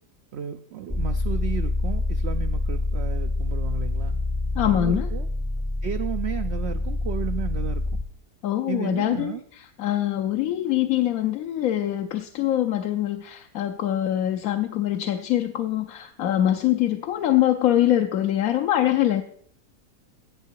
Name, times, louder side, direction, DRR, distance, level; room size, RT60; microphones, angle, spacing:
voice 1, 0.3-4.2 4.6-5.3 5.8-8.0 8.7-9.4, right 9 dB, 65° right, 8 dB, 0.6 m, -33 dB
sound 1, 0.9-8.0, left 2 dB, 15° left, 0.6 m, -26 dB
voice 2, 4.6-5.1 8.4-19.2, left 12 dB, 65° left, 6 dB, 1.0 m, -24 dB
17.0 x 6.7 x 4.6 m, 0.62 s
omnidirectional pair, 1.7 m